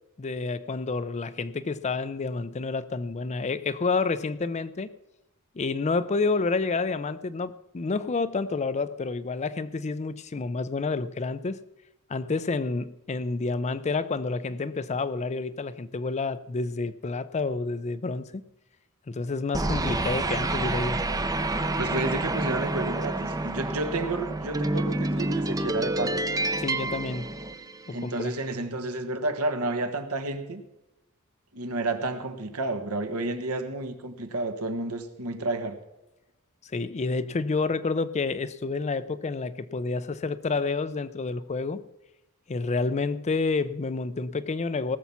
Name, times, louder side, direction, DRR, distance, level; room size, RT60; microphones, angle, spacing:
voice 1, 0.2-4.9 5.6-11.6 12.1-18.4 19.1-21.0 26.6-27.3 27.9-28.3 36.6-41.8 42.5-45.0, left 3 dB, 30° left, 0.5 m, -29 dB
sound 1, 19.5-28.1, right 2 dB, 15° right, 0.6 m, -28 dB
voice 2, 21.8-26.2 27.9-30.6 31.5-35.8, right 2 dB, 80° right, 1.4 m, -31 dB
18.5 x 7.1 x 5.9 m
head